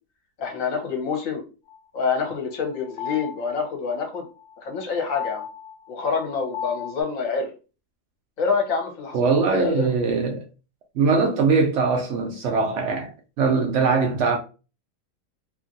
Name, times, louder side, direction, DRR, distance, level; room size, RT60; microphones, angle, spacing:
voice 1, 0.4-1.4 1.9-4.3 4.6-5.4 5.9-7.5 8.4-9.2 9.5-9.9, left 5 dB, 60° left, 1.1 m, -26 dB
sound 1, 1.7-7.0, left 8 dB, 80° left, 1.1 m, -36 dB
voice 2, 9.1-10.4 10.9-14.4, right 4 dB, 75° right, 0.7 m, -21 dB
2.9 x 2.4 x 2.5 m
omnidirectional pair, 1.7 m